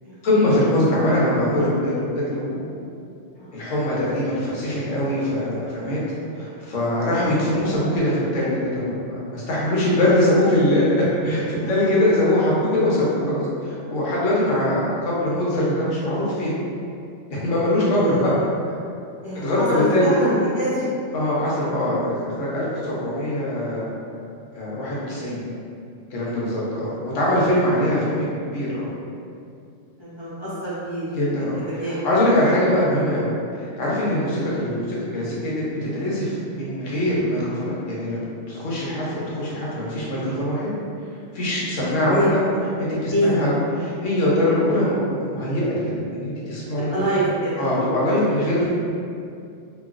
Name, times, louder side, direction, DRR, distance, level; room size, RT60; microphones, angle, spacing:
voice 1, 0.2-2.7 3.5-6.0 6.3-16.5 17.3-18.3 18.7-18.8 19.3-20.1 21.1-23.9 24.5-25.4 26.1-28.9 31.1-33.3 33.5-38.2 38.5-40.7 41.3-42.4 42.8-45.8 46.1-47.0 47.6-48.7, left 1 dB, 90° left, -7 dB, 1.1 m, -22 dB
voice 2, 11.6-12.0 18.0-18.3 19.2-20.9 22.9-23.0 25.0-25.2 26.9-27.0 30.0-31.1 31.7-32.1 32.3-32.5 34.1-34.3 41.9-42.6 43.1-43.4 46.8-47.8, equal, 35° left, -11 dB, 0.4 m, -26 dB
3.0 x 2.3 x 2.4 m, 2.5 s
omnidirectional pair, 1.2 m